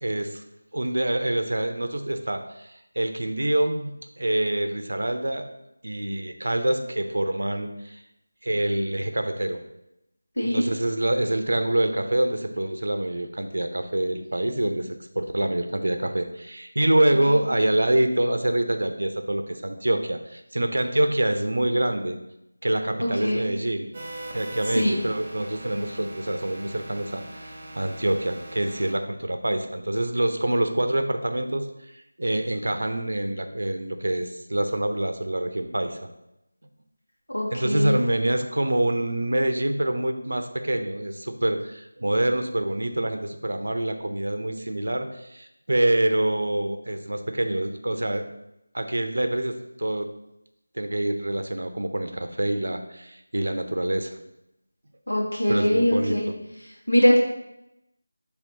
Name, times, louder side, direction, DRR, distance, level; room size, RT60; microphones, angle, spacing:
voice 1, 0.0-0.4 0.7-5.5 5.8-8.0 8.4-9.6 10.4-22.2 22.6-23.9 24.3-31.7 31.9-36.0 37.5-48.3 48.7-50.1 50.8-54.2 55.5-56.4, right 1 dB, 55° right, 7 dB, 0.6 m, -26 dB
voice 2, 23.0-23.5 24.8-25.0 37.3-37.9 55.1-56.3 56.9-57.2, equal, 65° left, -4 dB, 2.2 m, -22 dB
sound 1, 23.9-28.9, right 1 dB, 25° right, 1.1 m, -40 dB
7.4 x 3.5 x 4.0 m, 0.87 s
figure-of-eight pair, 165°, 0 cm